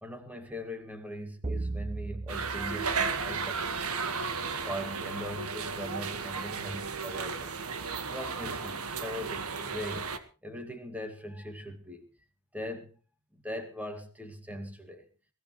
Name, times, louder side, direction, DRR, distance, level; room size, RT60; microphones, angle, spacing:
voice 1, 0.0-4.0 4.6-7.6 8.0-12.1 12.5-12.9 13.3-15.1, left 1 dB, 5° right, 7 dB, 2.1 m, -41 dB
sound 1, 1.4-3.9, right 2 dB, 25° right, 0.9 m, -37 dB
sound 2, 2.3-10.2, right 5 dB, 80° right, 1.6 m, -34 dB
22.5 x 15.5 x 3.2 m, 0.34 s
head